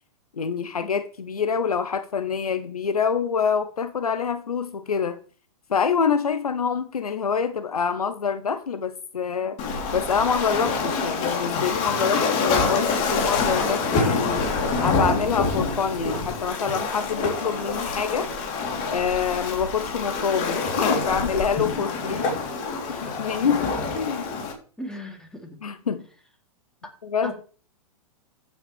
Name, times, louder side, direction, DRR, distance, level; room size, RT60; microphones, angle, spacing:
voice 1, 0.3-5.2 5.7-9.6 9.9-14.5 14.8-18.3 18.9-22.2 22.9-23.7 23.9-24.5 25.6-26.0 27.0-27.3, left 6 dB, 90° left, 11 dB, 0.9 m, -26 dB
Waves surf, 9.6-24.5, left 4 dB, 40° left, 3.5 m, -26 dB
voice 2, 24.8-25.6 27.2-27.3, equal, 5° left, 2 dB, 3.1 m, -37 dB
14.0 x 8.3 x 3.5 m, 0.40 s
hypercardioid pair, 110°, 18 cm